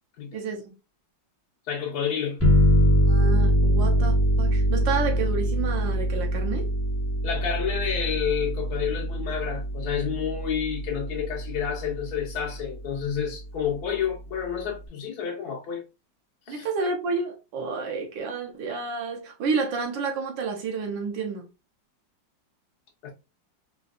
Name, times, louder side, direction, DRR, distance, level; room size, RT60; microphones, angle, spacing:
voice 1, 0.3-0.7 3.1-6.7 16.5-21.4, right 4 dB, 80° right, 1.5 m, -30 dB
voice 2, 1.7-2.4 7.2-15.8 16.5-16.7 23.0-23.1, left 8 dB, 65° left, 1.1 m, -29 dB
sound 1, 2.4-11.7, equal, 20° left, 0.4 m, -23 dB
3.9 x 2.4 x 2.3 m
omnidirectional pair, 2.0 m